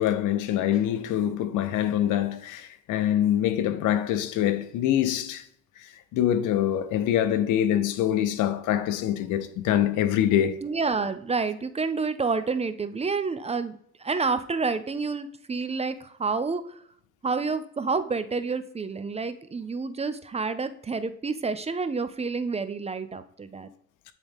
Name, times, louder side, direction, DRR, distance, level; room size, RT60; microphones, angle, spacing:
voice 1, 0.0-5.4 5.8-10.6, left 11 dB, 90° left, 0.6 m, -25 dB
voice 2, 10.6-16.8 17.2-23.7, right 4 dB, 20° right, 0.5 m, -29 dB
9.1 x 3.8 x 3.5 m
cardioid pair, 90°, 30 cm